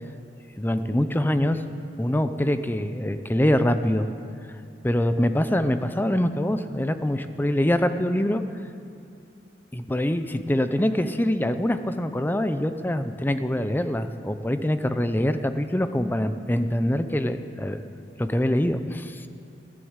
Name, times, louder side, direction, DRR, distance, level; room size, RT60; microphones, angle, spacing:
voice 1, 0.6-1.6 2.0-4.1 4.8-8.4 9.7-17.8 18.2-19.3, left 1 dB, 10° left, 10 dB, 0.5 m, -24 dB
14.0 x 11.0 x 8.1 m, 2.5 s
head